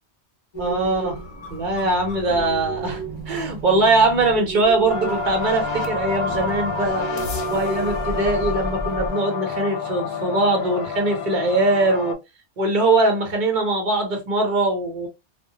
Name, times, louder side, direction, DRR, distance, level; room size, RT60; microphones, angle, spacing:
sound 1, 0.5-9.1, right 3 dB, 35° left, 0.5 m, -33 dB
voice 1, 0.6-1.2 1.5-7.1 7.5-12.2 12.6-15.1, right 2 dB, 45° right, 0.9 m, -21 dB
sound 2, 4.9-12.1, left 5 dB, 65° left, 0.8 m, -28 dB
2.2 x 2.1 x 2.7 m
omnidirectional pair, 1.2 m